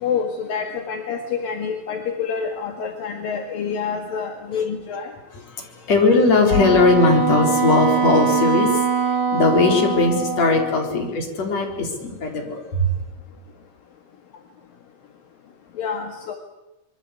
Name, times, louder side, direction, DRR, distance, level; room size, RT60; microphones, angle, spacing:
voice 1, 0.0-5.1 10.9-11.0 15.8-16.3, left 6 dB, 70° left, 4 dB, 3.6 m, -27 dB
voice 2, 5.6-12.9, left 3 dB, 45° left, 2 dB, 5.2 m, -19 dB
Wind instrument woodwind instrument, 6.5-11.0, right 6 dB, 45° right, 2.2 m, -22 dB
25.5 x 23.0 x 8.3 m, 0.96 s
omnidirectional pair, 4.2 m